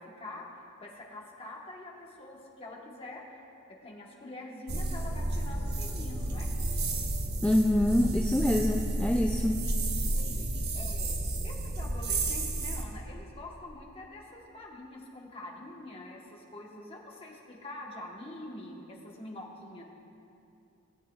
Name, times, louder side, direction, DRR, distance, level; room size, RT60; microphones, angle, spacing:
voice 1, 0.0-3.2 3.7-6.5 10.0-11.2 11.4-19.8, left 1 dB, 30° left, -2 dB, 1.2 m, -45 dB
sound 1, 4.7-12.8, right 2 dB, 55° right, 0.9 m, -31 dB
voice 2, 7.4-9.6, left 1 dB, 5° left, 1 dB, 0.3 m, -25 dB
17.5 x 8.3 x 2.4 m, 2.7 s
head